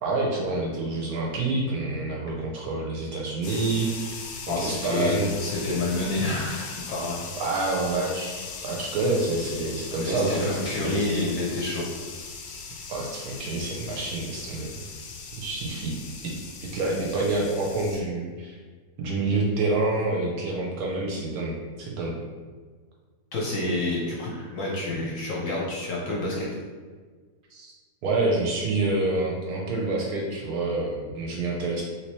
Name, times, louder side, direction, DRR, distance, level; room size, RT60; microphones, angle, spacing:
voice 1, 0.0-5.3 7.4-11.1 12.9-14.7 15.4-16.0 16.2-16.3 16.7-18.6 19.0-22.2 27.5-27.7 28.0-31.8, right 2 dB, 70° right, -2 dB, 1.0 m, -27 dB
sound 1, 3.4-18.0, left 5 dB, 80° left, 1.2 m, -39 dB
voice 2, 4.5-7.3 10.0-11.9 23.3-26.5, left 2 dB, 60° left, -4 dB, 0.9 m, -28 dB
3.2 x 2.9 x 3.0 m, 1.5 s
omnidirectional pair, 1.8 m